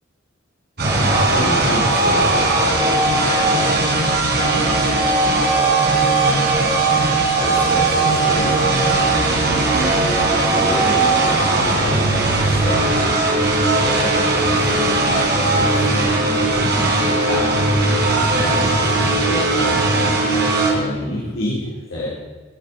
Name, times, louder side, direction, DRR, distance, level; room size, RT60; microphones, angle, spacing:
sound 1, 0.8-20.7, right 2 dB, 55° right, 3.6 m, -18 dB
voice 1, 0.9-3.9 4.3-6.9 7.3-13.1 13.7-17.0 17.3-17.7 18.1-19.8 20.6-22.1, left 1 dB, 75° left, -7 dB, 3.5 m, -29 dB
21.0 x 9.5 x 4.2 m, 1.3 s
head